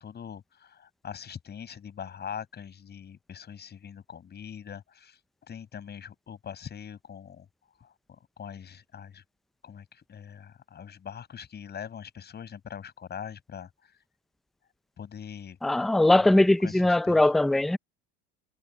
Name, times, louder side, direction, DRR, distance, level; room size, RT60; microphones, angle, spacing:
voice 1, 0.0-5.2 5.5-7.5 7.8-9.2 9.6-13.9 15.0-15.6 16.1-17.2, left 8 dB, 35° left, 8.0 m, -42 dB
voice 2, 15.6-17.8, left 1 dB, ahead, 0.4 m, -21 dB
supercardioid pair, 105°, 30 cm